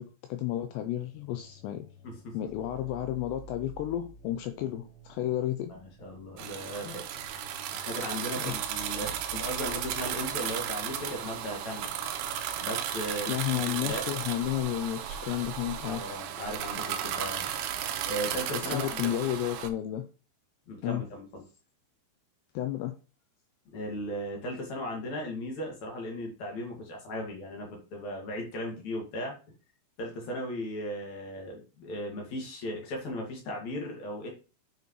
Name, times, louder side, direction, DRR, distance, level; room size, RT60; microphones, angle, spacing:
voice 1, 0.0-1.9 2.3-5.7 8.4-8.6 13.3-16.0 18.5-20.0 20.8-21.0 22.5-22.9, left 13 dB, 85° left, 8 dB, 2.5 m, -32 dB
sound 1, 0.9-12.9, right 3 dB, 15° left, 2.2 m, -52 dB
voice 2, 2.0-2.4 5.7-7.4 7.7-11.9 12.6-14.1 15.8-17.5 18.1-19.3 20.7-21.4 23.7-29.3 30.0-34.3, equal, 50° left, 0 dB, 2.8 m, -37 dB
sound 2, 6.4-19.7, right 9 dB, 80° right, 2.5 m, -35 dB
7.9 x 6.8 x 3.2 m, 0.35 s
omnidirectional pair, 5.4 m